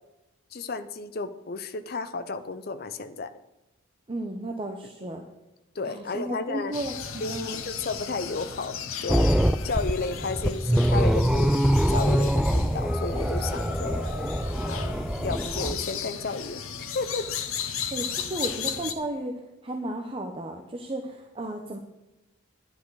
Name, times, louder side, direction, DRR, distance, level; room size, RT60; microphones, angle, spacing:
voice 1, 0.5-3.3 5.8-6.7 7.2-9.3 9.6-11.6 11.9-14.0 14.7-17.3, left 3 dB, 45° left, 11 dB, 0.6 m, -33 dB
voice 2, 4.1-5.2 5.9-7.6 17.9-21.8, right 1 dB, 25° right, 3 dB, 0.8 m, -34 dB
sound 1, 6.7-18.9, left 7 dB, 90° left, 0.9 m, -36 dB
sound 2, 9.1-15.8, equal, 5° right, 0.3 m, -24 dB
10.5 x 10.0 x 4.8 m, 0.97 s
head